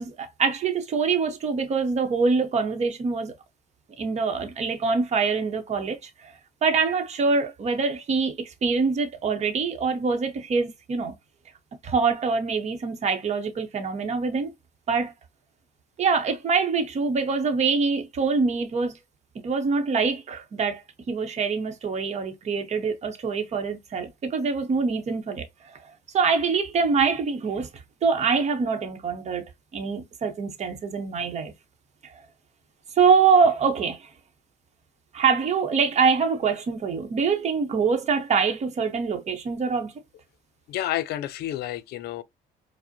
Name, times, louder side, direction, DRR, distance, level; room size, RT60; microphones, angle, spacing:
voice 1, 0.0-3.3 4.0-6.3 6.6-11.1 11.8-14.5 14.9-15.1 16.0-19.0 19.4-20.8 21.1-25.9 26.1-27.7 28.0-29.4 29.7-31.5 32.0-32.1 33.0-34.1 35.1-39.9, right 5 dB, 40° right, 0.9 m, -24 dB
voice 2, 40.7-42.2, left 13 dB, 70° left, 0.5 m, -30 dB
4.8 x 2.1 x 2.7 m
cardioid pair, 110°, 17 cm